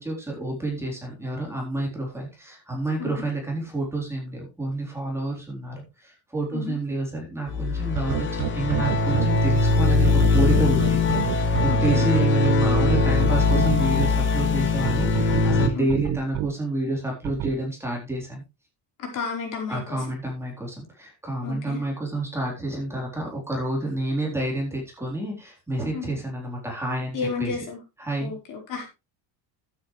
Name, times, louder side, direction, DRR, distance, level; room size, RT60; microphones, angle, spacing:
voice 1, 0.0-18.4 19.7-27.6 28.0-28.3, right 2 dB, 5° right, -2 dB, 3.9 m, -29 dB
sound 1, 7.5-15.7, left 3 dB, 30° left, 1.7 m, -21 dB
sound 2, 8.0-9.3 10.0-14.1 14.8-16.5 17.2-17.5, right 16 dB, 80° right, 1.0 m, -28 dB
voice 2, 11.7-12.0 15.7-15.9 19.0-20.0 21.4-21.8 25.9-26.1 27.1-27.8 28.2-28.9, left 5 dB, 55° left, 1 dB, 4.7 m, -32 dB
12.5 x 9.3 x 3.3 m, 0.27 s
cardioid pair, 170°, 39 cm